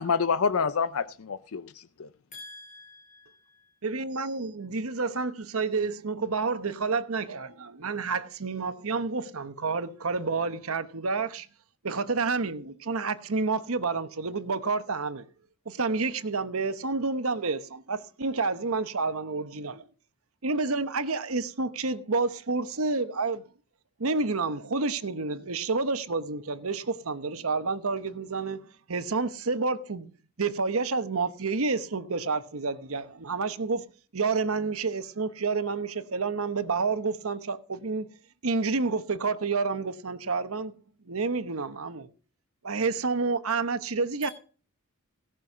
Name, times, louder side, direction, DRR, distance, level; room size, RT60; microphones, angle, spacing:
voice 1, 0.0-2.1, left 5 dB, 75° left, 0.6 m, -27 dB
voice 2, 2.3-3.8 44.2-44.3, left 2 dB, 40° left, 3.5 m, -47 dB
voice 3, 3.8-11.5 11.8-15.2 15.7-19.8 20.4-23.4 24.0-30.1 30.4-33.8 34.1-38.1 38.4-40.7 41.1-42.1 42.6-44.3, right 4 dB, 75° right, 1.0 m, -29 dB
17.5 x 6.2 x 6.0 m
head